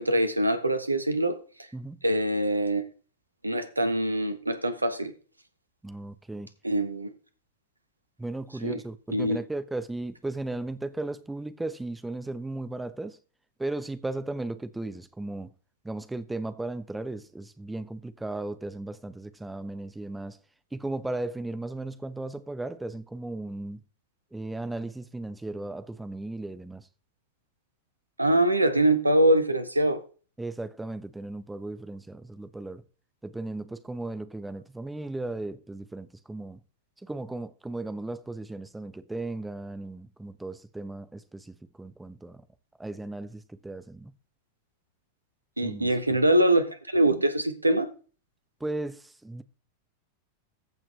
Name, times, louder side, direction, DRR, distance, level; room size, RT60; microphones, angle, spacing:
voice 1, 0.0-1.4 2.0-2.8 3.4-5.1 6.6-7.1 8.6-8.8 9.1-9.4 28.2-30.0 45.6-47.9, right 1 dB, 85° right, 1.2 m, -23 dB
voice 2, 5.8-6.5 8.2-13.2 13.6-15.5 15.8-20.4 20.7-23.8 24.3-26.8 30.4-32.8 33.2-36.6 37.0-42.4 42.8-44.1 45.6-45.9 48.6-49.4, right 2 dB, 5° right, 0.8 m, -36 dB
14.5 x 6.1 x 3.2 m
figure-of-eight pair, 90°, 0 cm